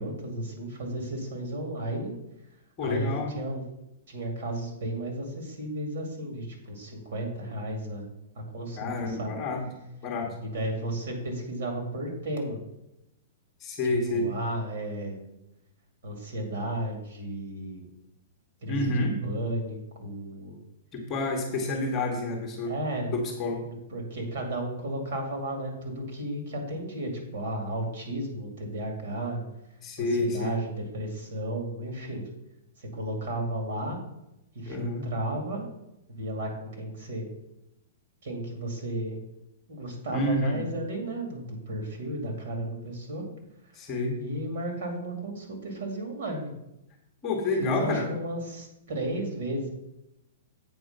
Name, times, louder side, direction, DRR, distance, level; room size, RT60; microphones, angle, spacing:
voice 1, 0.0-2.1 2.8-3.6 4.1-8.1 8.3-9.3 10.4-12.6 14.1-15.2 16.0-17.9 18.6-20.6 22.7-23.1 23.9-29.4 30.0-32.2 32.8-34.0 34.5-35.6 36.1-37.3 38.2-39.2 39.7-43.2 43.6-43.8 44.2-46.5 47.6-49.7, right 1 dB, 55° right, 3 dB, 2.4 m, -33 dB
voice 2, 2.8-3.3 8.8-9.6 10.0-10.3 13.6-14.3 18.7-19.1 20.9-22.7 23.1-23.6 29.8-30.6 34.6-35.1 40.1-40.5 43.7-44.2 47.2-48.1, left 2 dB, 15° left, 1 dB, 1.2 m, -29 dB
8.0 x 4.7 x 6.6 m, 0.86 s
hypercardioid pair, 175°, 0 cm